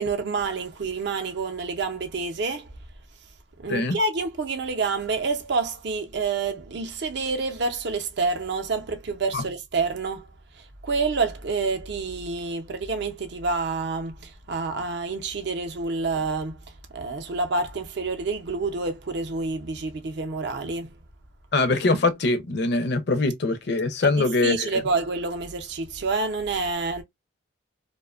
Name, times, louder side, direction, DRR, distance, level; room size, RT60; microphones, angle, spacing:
voice 1, 0.0-2.7 3.6-10.3 10.6-16.6 16.9-20.9 24.0-24.2 24.4-27.0, right 4 dB, 55° right, 0.5 m, -28 dB
voice 2, 21.5-24.8, left 3 dB, 55° left, 0.5 m, -23 dB
2.5 x 2.1 x 2.3 m
head